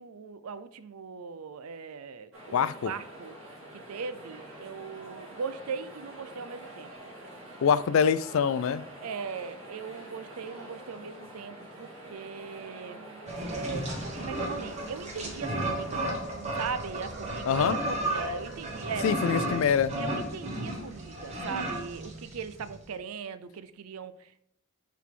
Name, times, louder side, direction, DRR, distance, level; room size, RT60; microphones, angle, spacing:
voice 1, 0.0-3.3 3.9-6.9 9.0-13.0 13.5-16.0 16.6-19.3 20.0-24.4, right 6 dB, 90° right, 13 dB, 0.5 m, -39 dB
sound 1, 2.3-16.1, right 1 dB, 65° right, 2.0 m, -46 dB
voice 2, 2.5-2.9 7.6-8.8 17.5-17.8 19.0-19.9, left 7 dB, 70° left, 16 dB, 0.3 m, -24 dB
sound 2, 12.7-19.5, right 4 dB, 50° right, 0.7 m, -45 dB
sound 3, 13.3-22.7, right 1 dB, 30° right, 1.2 m, -34 dB
5.8 x 4.6 x 3.6 m, 0.75 s
head